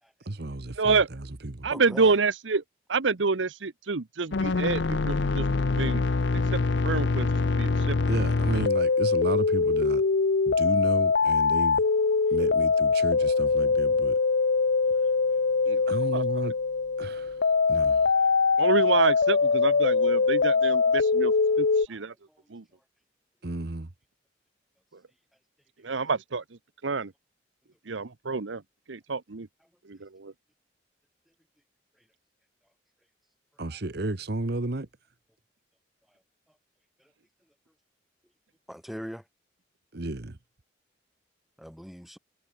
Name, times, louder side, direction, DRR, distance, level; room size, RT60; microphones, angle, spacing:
voice 1, 0.2-1.7 8.1-10.0 10.4-11.8 12.3-14.2 15.9-16.5 17.0-18.1 23.4-23.9 33.6-34.9 39.9-40.4, right 2 dB, 60° right, 1.2 m, -33 dB
voice 2, 0.8-1.1 1.6-2.6 2.9-5.5 5.7-6.0 6.3-6.6 6.8-7.3 7.5-8.0 15.7-15.8 16.1-16.2 18.6-22.1 22.5-22.6 25.8-26.4 26.8-27.1 27.9-28.6 28.9-29.5 29.8-30.3, right 4 dB, 75° right, 0.9 m, -27 dB
voice 3, 1.6-2.1 14.8-14.9 18.2-18.3 21.9-22.0 22.3-22.5 37.0-37.1 38.7-39.2 41.6-42.2, equal, ahead, 3.6 m, -42 dB
sound 1, 4.3-21.9, left 4 dB, 65° left, 0.6 m, -23 dB
head